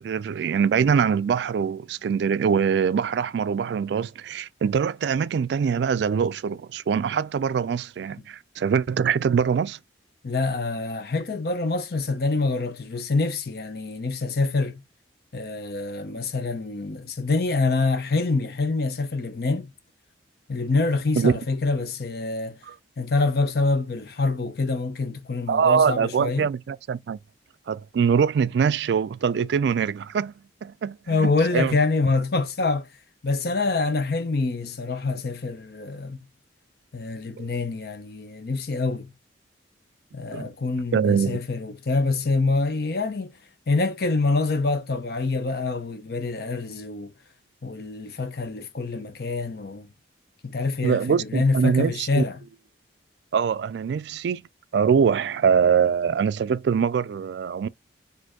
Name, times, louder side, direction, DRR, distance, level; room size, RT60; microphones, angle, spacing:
voice 1, 0.0-9.8 21.2-21.4 22.7-22.8 25.5-27.2 27.7-30.3 30.6-31.8 37.4-37.5 40.3-40.5 40.9-41.4 50.8-52.2 53.3-54.4 54.7-57.7, right 6 dB, 65° right, 0.3 m, -23 dB
voice 2, 10.2-14.8 15.3-19.7 20.5-22.6 23.0-26.5 31.1-32.9 33.2-36.2 36.9-39.1 40.1-43.3 43.7-47.1 47.6-49.9 50.4-52.4, left 3 dB, 55° left, 0.6 m, -26 dB
4.3 x 2.6 x 2.8 m
head